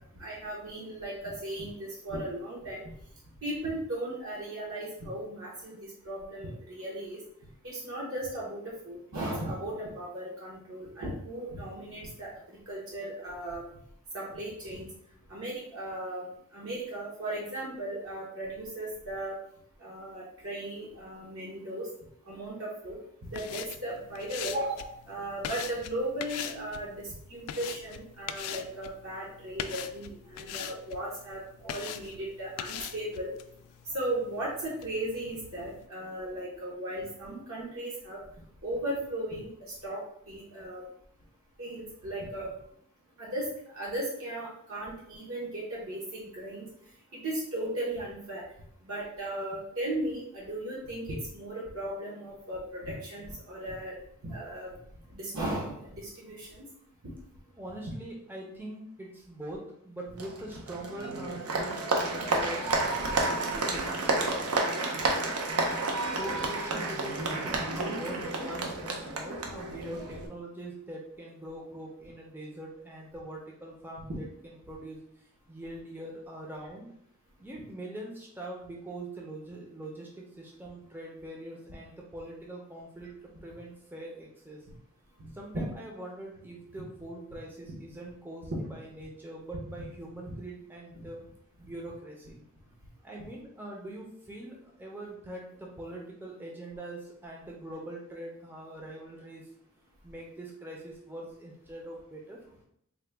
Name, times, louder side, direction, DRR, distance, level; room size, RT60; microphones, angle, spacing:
voice 1, 0.2-2.9 3.4-7.2 7.6-12.3 12.7-13.6 14.1-14.8 15.3-16.3 16.5-19.4 19.8-21.9 22.3-23.0 23.3-33.3 33.9-38.2 38.6-39.5 39.8-40.8 41.6-42.5 43.2-46.7 47.1-48.4 48.8-54.0 54.2-54.8 55.1-56.6, right 1 dB, 60° right, -5 dB, 0.9 m, -36 dB
sound 1, 23.2-35.9, left 9 dB, 85° left, 0.3 m, -42 dB
voice 2, 57.6-59.6 59.8-63.9 64.2-65.4 66.1-76.9 77.4-83.1 83.4-84.6 85.3-91.2 91.6-92.4 93.0-99.5 100.0-102.6, right 1 dB, 10° right, -2 dB, 0.5 m, -43 dB
Applause, 60.2-70.3, right 2 dB, 85° right, 0.7 m, -31 dB
3.9 x 2.2 x 3.3 m, 0.69 s
head